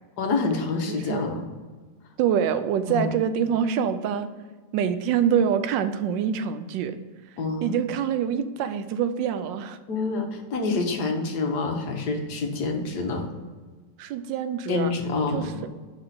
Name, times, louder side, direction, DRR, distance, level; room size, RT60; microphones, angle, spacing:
voice 1, 0.2-1.5 2.9-3.1 7.4-7.8 9.9-13.3 14.7-15.6, left 3 dB, 65° left, 3 dB, 1.4 m, -27 dB
voice 2, 0.9-1.2 2.2-4.3 4.7-7.0 7.6-9.8 14.0-14.9 15.3-15.5, right 8 dB, 85° right, 11 dB, 1.3 m, -25 dB
5.2 x 4.9 x 5.8 m, 1.4 s
omnidirectional pair, 1.9 m